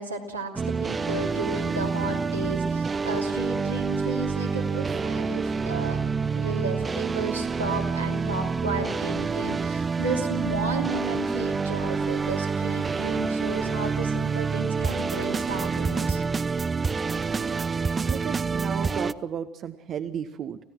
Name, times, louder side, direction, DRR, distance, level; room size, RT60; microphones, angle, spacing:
voice 1, 0.0-6.0 6.3-16.2, right 3 dB, 85° right, 0 dB, 2.8 m, -33 dB
sound 1, 0.6-19.1, right 5 dB, 25° right, 0.7 m, -27 dB
voice 2, 18.1-20.6, right 8 dB, 45° right, 10 dB, 1.0 m, -33 dB
29.0 x 16.0 x 6.0 m, 0.83 s
figure-of-eight pair, 65°, 0 cm